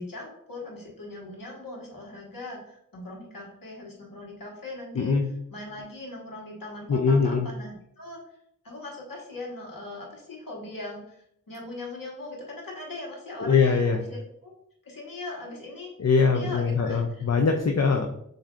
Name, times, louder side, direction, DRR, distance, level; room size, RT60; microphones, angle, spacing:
voice 1, 0.0-5.2 5.5-8.2 8.6-14.5 14.8-15.9 16.2-17.2, left 2 dB, 80° left, -2 dB, 1.3 m, -40 dB
voice 2, 5.0-5.3 6.9-7.5 13.4-14.0 16.0-18.1, left 5 dB, 50° left, 4 dB, 0.5 m, -22 dB
7.2 x 2.7 x 2.4 m, 0.72 s
wide cardioid pair, 50°, 33 cm